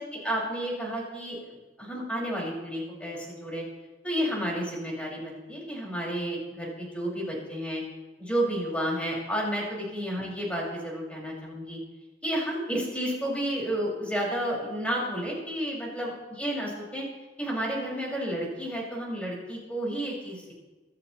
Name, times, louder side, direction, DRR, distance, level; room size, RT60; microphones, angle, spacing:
voice 1, 0.0-3.6 4.0-7.8 8.2-11.8 12.2-17.0 17.4-20.5, equal, 5° left, -4 dB, 6.1 m, -31 dB
26.5 x 12.5 x 3.2 m, 1.2 s
head